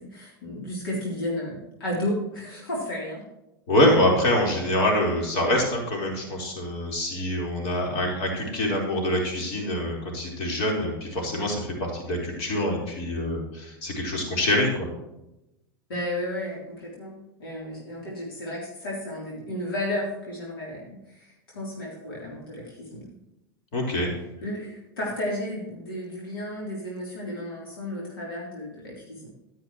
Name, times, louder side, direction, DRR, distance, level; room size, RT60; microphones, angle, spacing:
voice 1, 0.0-3.2 15.9-23.1 24.4-29.3, left 1 dB, 85° left, -4 dB, 3.6 m, -33 dB
voice 2, 3.7-14.9 23.7-24.1, left 1 dB, 55° left, -1 dB, 4.5 m, -25 dB
12.0 x 10.5 x 3.2 m, 0.91 s
hypercardioid pair, 95°, 12 cm